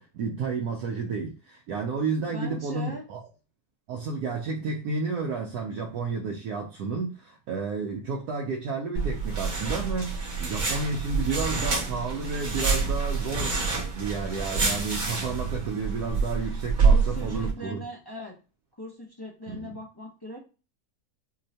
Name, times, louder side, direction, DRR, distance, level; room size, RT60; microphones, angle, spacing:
voice 1, 0.0-3.2 3.9-13.7 13.9-17.8 19.5-19.7, right 4 dB, 75° right, 1.0 m, -31 dB
voice 2, 2.2-3.0 4.6-4.7 16.9-18.3 18.8-20.4, equal, 35° left, 0.3 m, -40 dB
sound 1, 8.9-17.5, right 4 dB, 40° right, 0.7 m, -27 dB
4.5 x 2.1 x 2.7 m
omnidirectional pair, 1.7 m